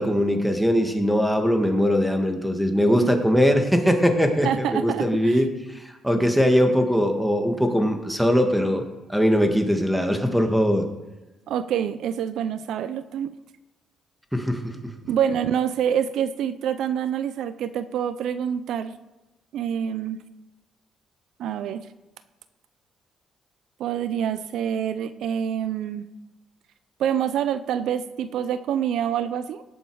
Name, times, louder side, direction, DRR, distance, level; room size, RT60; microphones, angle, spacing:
voice 1, 0.0-10.9 14.3-14.7, equal, ahead, 5 dB, 1.8 m, -21 dB
voice 2, 2.8-3.1 4.4-5.4 11.5-13.3 15.1-18.9 19.5-20.2 21.4-21.8 23.8-26.0 27.0-29.6, right 9 dB, 80° right, 13 dB, 0.5 m, -26 dB
18.0 x 8.0 x 4.8 m, 1.1 s
cardioid pair, 90°, 0 cm